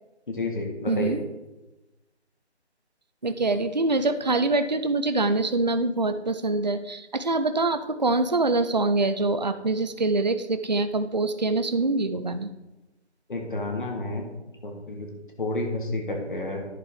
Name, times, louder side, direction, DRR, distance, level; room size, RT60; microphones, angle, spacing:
voice 1, 0.3-1.2 13.3-14.3 14.6-15.1 15.4-16.7, left 2 dB, 45° left, 2 dB, 2.0 m, -30 dB
voice 2, 0.9-1.2 3.2-12.5, right 2 dB, 40° right, 10 dB, 0.5 m, -24 dB
11.0 x 6.5 x 4.7 m, 1.0 s
figure-of-eight pair, 170°, 34 cm